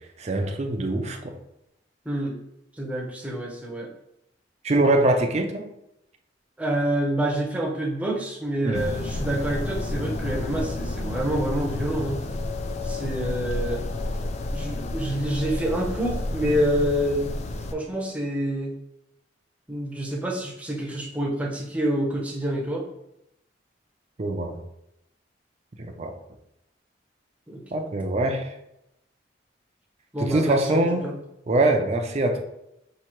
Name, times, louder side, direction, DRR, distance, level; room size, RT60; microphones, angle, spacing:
voice 1, 0.2-1.3 4.6-5.7 8.6-8.8 24.2-24.6 25.8-26.1 27.7-28.5 30.2-31.0 31.5-32.4, right 2 dB, 35° right, 3 dB, 0.5 m, -23 dB
voice 2, 2.0-2.4 2.8-3.9 6.6-12.2 12.8-13.8 14.5-18.7 19.7-22.8 27.5-27.8 30.1-31.2, right 1 dB, 10° right, -2 dB, 0.7 m, -27 dB
sound 1, 8.7-17.7, left 2 dB, 40° left, 0.3 m, -30 dB
5.7 x 2.8 x 3.0 m, 0.82 s
head